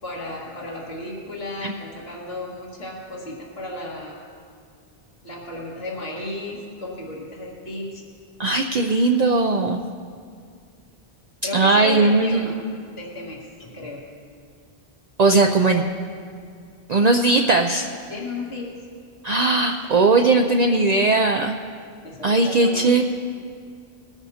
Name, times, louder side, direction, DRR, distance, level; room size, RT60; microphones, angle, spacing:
voice 1, 0.0-4.2 5.2-8.0 11.4-12.6 13.0-14.0 18.1-18.7 22.0-22.9, left 2 dB, 75° left, -3 dB, 2.2 m, -34 dB
voice 2, 8.4-9.8 11.5-12.5 15.2-15.8 16.9-17.9 19.2-21.5 22.2-23.0, right 3 dB, 50° right, 3 dB, 0.6 m, -18 dB
21.0 x 13.0 x 2.8 m, 2.2 s
omnidirectional pair, 1.0 m